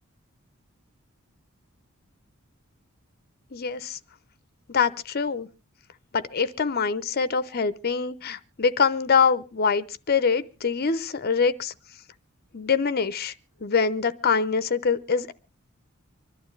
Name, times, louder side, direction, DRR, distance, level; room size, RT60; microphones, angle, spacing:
voice 1, 3.5-4.0 4.7-5.5 6.1-11.7 12.5-13.3 13.6-15.3, left 5 dB, 45° left, 0.7 m, -24 dB
25.5 x 11.5 x 3.3 m
head